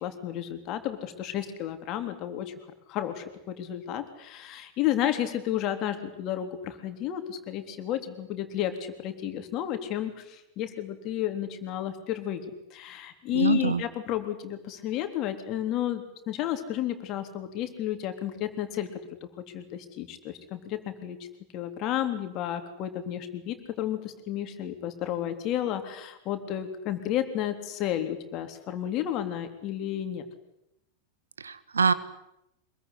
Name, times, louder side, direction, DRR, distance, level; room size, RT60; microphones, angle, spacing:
voice 1, 0.0-2.5 2.9-12.4 12.7-18.9 19.5-21.2 21.5-30.2, left 11 dB, 40° left, 8 dB, 3.6 m, -32 dB
voice 2, 13.3-13.8 31.4-31.9, right 5 dB, 75° right, 14 dB, 1.7 m, -25 dB
25.0 x 22.5 x 10.0 m, 0.85 s
figure-of-eight pair, 90°, 0 cm